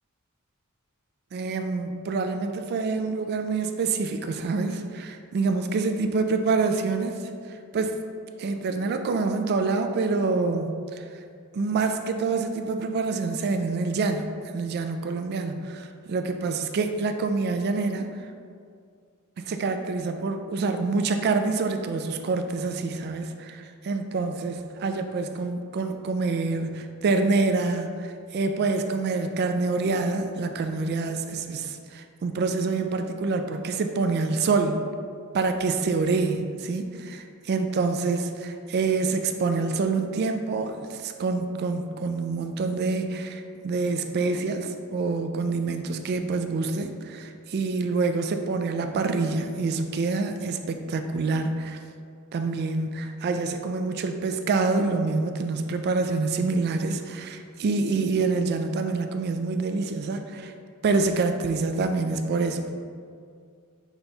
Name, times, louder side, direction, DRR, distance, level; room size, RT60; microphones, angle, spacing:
voice 1, 1.3-7.2 7.5-8.0 8.4-11.0 11.5-14.3 14.5-18.2 19.4-34.8 35.3-51.8 52.3-60.5 60.8-62.7, right 3 dB, 45° right, 7 dB, 0.3 m, -26 dB
5.0 x 4.1 x 2.3 m, 2.2 s
head